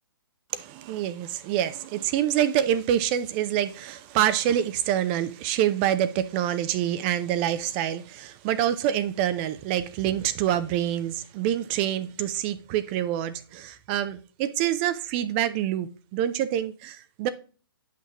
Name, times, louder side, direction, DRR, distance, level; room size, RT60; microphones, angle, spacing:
voice 1, 0.5-17.3, right 11 dB, 25° right, 0.5 m, -26 dB
9.2 x 5.8 x 3.0 m
figure-of-eight pair, 125°, 12 cm